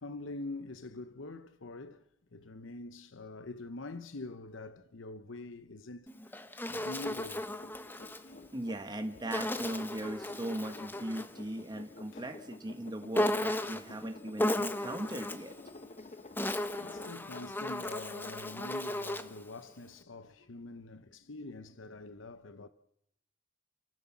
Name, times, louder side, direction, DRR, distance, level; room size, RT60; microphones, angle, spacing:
voice 1, 0.0-2.0 2.3-7.6 8.2-8.4 12.1-12.2 16.8-22.7, left 2 dB, 70° left, 0.9 m, -45 dB
Insect, 6.1-8.2 9.3-11.4 13.1-13.9 14.4-15.5 16.1-19.4, left 1 dB, 10° left, 1.0 m, -35 dB
sound 1, 7.2-17.4 17.8-17.9, left 2 dB, 35° left, 1.2 m, -50 dB
voice 2, 8.5-15.5, right 1 dB, 20° right, 1.3 m, -39 dB
28.5 x 15.0 x 7.3 m
head